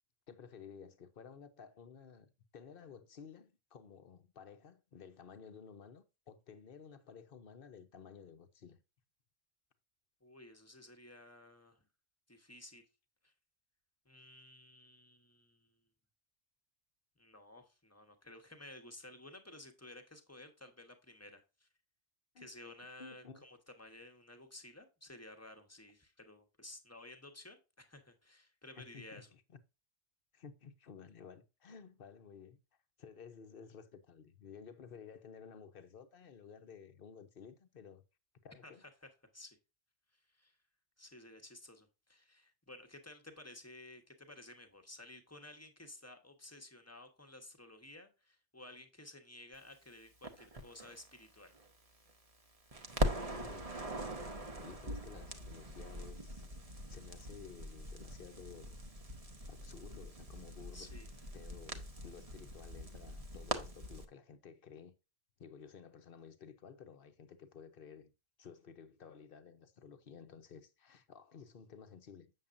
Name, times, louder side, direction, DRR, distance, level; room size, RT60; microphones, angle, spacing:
voice 1, 0.3-8.8 22.3-22.5 22.8-23.4 28.8-29.4 30.3-32.6 33.0-38.0 38.4-38.8 53.3-53.8 54.6-58.8 59.5-60.9 61.3-64.9 65.4-68.1 68.4-72.3, left 6 dB, 50° left, 1.0 m, -54 dB
voice 2, 10.2-11.8 12.3-12.9 13.2-13.3 14.0-15.8 17.2-21.7 22.4-29.3 38.6-39.6 40.3-40.5 41.0-51.5 60.7-61.1, left 1 dB, 15° left, 1.2 m, -54 dB
Crackle, 50.2-52.4 52.7-64.0, equal, 30° right, 1.0 m, -42 dB
7.7 x 7.2 x 2.6 m
omnidirectional pair, 1.2 m